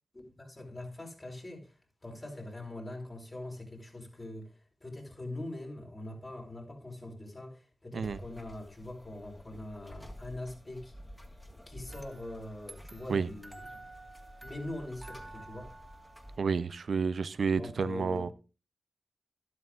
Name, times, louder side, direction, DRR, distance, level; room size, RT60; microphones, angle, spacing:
voice 1, 0.1-11.0 11.7-13.8 14.4-15.7 17.5-18.3, left 1 dB, 35° left, 4.8 m, -43 dB
sound 1, 8.0-16.4, equal, 15° left, 2.5 m, -51 dB
sound 2, 11.9-16.9, right 2 dB, 20° right, 2.0 m, -51 dB
voice 2, 16.4-18.3, right 5 dB, 70° right, 0.5 m, -30 dB
13.0 x 11.5 x 2.4 m
cardioid pair, 40°, 0 cm